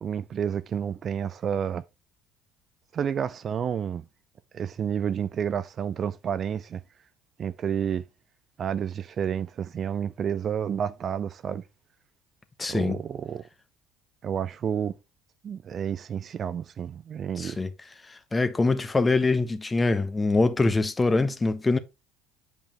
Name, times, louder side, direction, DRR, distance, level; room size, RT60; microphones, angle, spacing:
voice 1, 0.0-1.8 2.9-4.0 4.5-6.8 7.4-8.0 8.6-11.6 12.7-13.4 14.2-15.0 15.4-17.6, right 8 dB, 40° right, 0.4 m, -30 dB
voice 2, 12.6-12.9 17.4-17.7 18.1-21.8, left 3 dB, 20° left, 1.1 m, -24 dB
8.7 x 5.2 x 3.0 m
hypercardioid pair, 65°, 0 cm